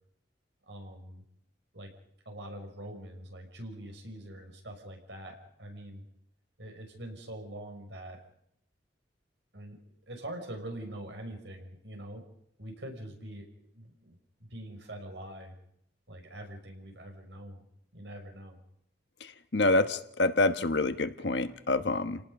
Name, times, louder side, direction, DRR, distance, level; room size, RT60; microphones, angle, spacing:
voice 1, 0.7-1.2 1.7-1.9 2.3-6.0 6.6-8.2 9.5-9.8 10.1-12.2 12.6-13.5 13.7-15.5 16.1-17.6 17.9-18.6, right 1 dB, 80° right, 4 dB, 5.8 m, -44 dB
voice 2, 19.2-22.2, left 2 dB, 70° left, 9 dB, 1.2 m, -27 dB
29.5 x 18.5 x 5.4 m, 0.74 s
head